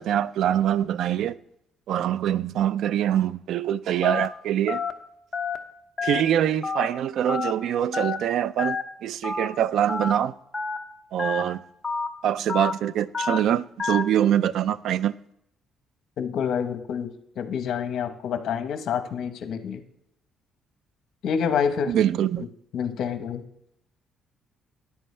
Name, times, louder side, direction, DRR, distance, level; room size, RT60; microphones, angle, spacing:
voice 1, 0.0-1.4 1.9-4.8 6.0-10.3 11.1-11.6 12.2-15.2 21.9-22.5, right 10 dB, 70° right, 0.3 m, -24 dB
Telephone, 4.0-4.3 4.7-4.9 5.3-5.6 6.0-6.2 6.6-6.9 7.3-7.5 7.9-8.2 8.6-8.8 9.2-9.5 9.9-10.1 10.5-10.8 11.2-11.4 11.8-12.1 12.5-12.7 13.1-13.4 13.8-14.0, left 5 dB, 25° left, 0.9 m, -28 dB
voice 2, 16.2-17.1 17.4-19.8 21.2-21.9 22.7-23.4, left 7 dB, 65° left, 0.9 m, -27 dB
13.0 x 9.9 x 3.2 m
cardioid pair, 145°, 0 cm